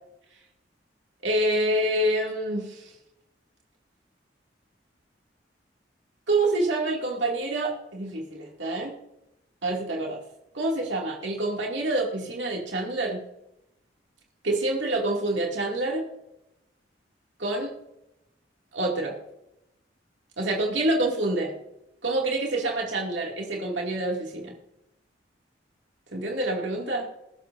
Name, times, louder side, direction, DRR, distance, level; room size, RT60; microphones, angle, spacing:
voice 1, 1.2-2.9 6.3-9.0 9.6-10.2 10.5-13.2 14.4-16.0 17.4-17.7 18.7-19.1 20.4-21.5 22.0-24.5 26.1-27.1, right 2 dB, 85° right, -1 dB, 2.4 m, -27 dB
21.0 x 12.5 x 2.6 m, 0.86 s
head